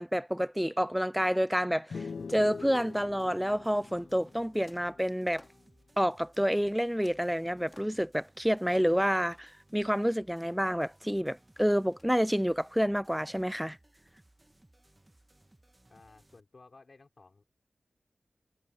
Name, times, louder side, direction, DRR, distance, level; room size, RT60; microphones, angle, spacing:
voice 1, 0.0-5.4 6.0-13.8, equal, 5° right, 0.3 m, -29 dB
sound 1, 1.9-5.5, left 5 dB, 85° left, 0.3 m, -43 dB
sound 2, 2.1-16.4, right 1 dB, 20° right, 1.3 m, -63 dB
sound 3, 2.9-3.6 4.7-5.6 6.6-6.7 7.0-8.4 8.9-9.8 11.6-12.1, left 1 dB, 25° left, 4.5 m, -61 dB
voice 2, 15.9-17.4, left 3 dB, 55° left, 5.0 m, -56 dB
wide cardioid pair, 80°, 0 cm